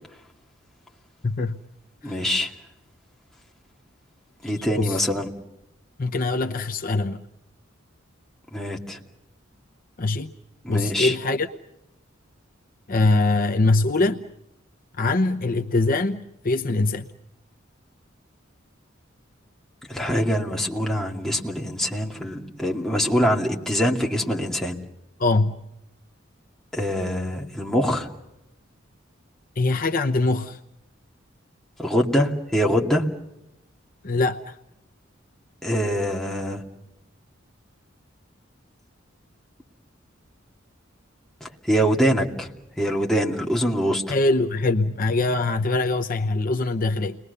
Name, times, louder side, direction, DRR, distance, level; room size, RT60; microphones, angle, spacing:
voice 1, 1.2-1.6 2.0-2.2 4.7-5.1 6.0-7.2 10.0-10.3 10.7-11.5 12.9-14.2 15.0-17.1 25.2-25.6 29.6-30.6 34.0-34.5 44.1-47.2, left 2 dB, 45° left, 0.8 m, -23 dB
voice 2, 2.0-2.5 4.4-5.3 8.5-9.0 10.6-11.1 19.9-24.8 26.7-28.1 31.8-33.0 35.6-36.6 41.4-42.5 42.8-44.1, equal, 5° left, 2.6 m, -24 dB
30.0 x 22.0 x 6.8 m
head